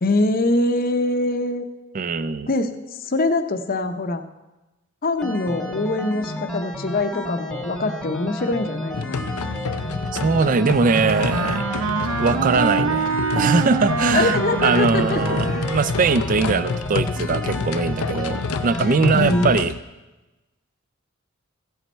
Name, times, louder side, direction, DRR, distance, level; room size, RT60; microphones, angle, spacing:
voice 1, 0.0-1.6 2.5-2.7 3.0-4.2 5.0-9.3 14.1-15.2 19.1-19.5, left 2 dB, 45° left, 8 dB, 0.7 m, -23 dB
voice 2, 1.9-2.5 10.1-11.6 12.2-13.1 13.3-14.4 14.6-19.7, right 4 dB, 40° right, 14 dB, 0.4 m, -21 dB
sound 1, 5.2-19.6, left 1 dB, ahead, 0.9 m, -32 dB
sound 2, 8.9-19.8, left 4 dB, 85° left, 0.5 m, -28 dB
Wind instrument woodwind instrument, 10.8-16.1, right 4 dB, 90° right, 0.7 m, -25 dB
15.0 x 8.1 x 4.4 m, 1.1 s
head